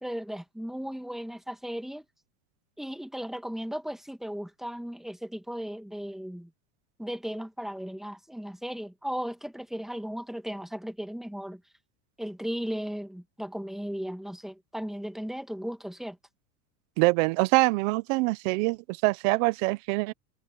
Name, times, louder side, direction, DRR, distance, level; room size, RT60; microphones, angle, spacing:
voice 1, 0.0-2.0 2.8-6.5 7.0-11.6 12.2-16.2, equal, ahead, 1.6 m, -36 dB
voice 2, 17.0-20.1, right 25 dB, 60° right, 1.1 m, -24 dB
supercardioid pair, 130°, 45 cm